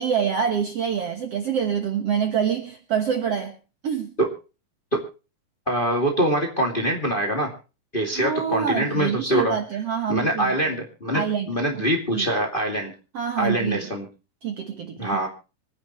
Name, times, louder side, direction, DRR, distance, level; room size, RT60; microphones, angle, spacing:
voice 1, 0.0-3.5 3.8-4.1 8.1-10.5 11.1-12.3 13.1-13.9 14.4-15.2, right 7 dB, 55° right, 5 dB, 1.9 m, -26 dB
voice 2, 5.7-7.5 7.9-9.6 10.1-12.9 13.4-14.0 15.0-15.3, right 1 dB, 15° left, 2 dB, 2.1 m, -24 dB
25.5 x 10.5 x 3.1 m, 0.32 s
omnidirectional pair, 4.3 m